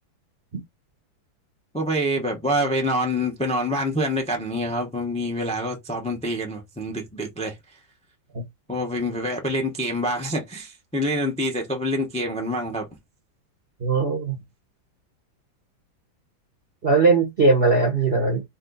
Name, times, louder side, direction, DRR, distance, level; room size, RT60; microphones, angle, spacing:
voice 1, 1.7-7.6 8.7-12.9, equal, 5° left, 0.6 m, -26 dB
voice 2, 13.8-14.4 16.8-18.4, right 3 dB, 40° right, 0.9 m, -19 dB
4.3 x 3.0 x 4.0 m
omnidirectional pair, 2.1 m